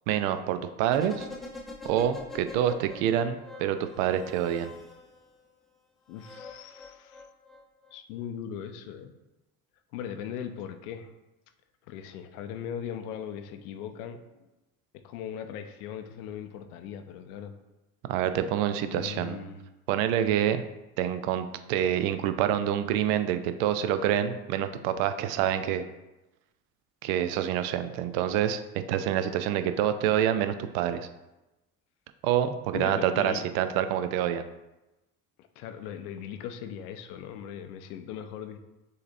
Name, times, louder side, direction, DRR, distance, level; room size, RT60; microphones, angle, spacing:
voice 1, 0.1-1.3 1.8-4.7 18.1-19.4 19.9-20.6 21.0-25.9 27.0-31.1 32.2-34.5, right 10 dB, 65° right, 10 dB, 0.5 m, -27 dB
sound 1, 0.9-5.3 6.1-7.9 8.2-8.3, left 3 dB, ahead, 0.6 m, -44 dB
voice 2, 6.1-7.3 7.9-9.1 9.9-11.1 11.9-14.2 15.0-17.5 18.9-19.6 32.7-33.5 35.6-38.6, left 8 dB, 70° left, 8 dB, 0.6 m, -39 dB
6.5 x 2.8 x 2.6 m, 1.0 s
hypercardioid pair, 65°, 46 cm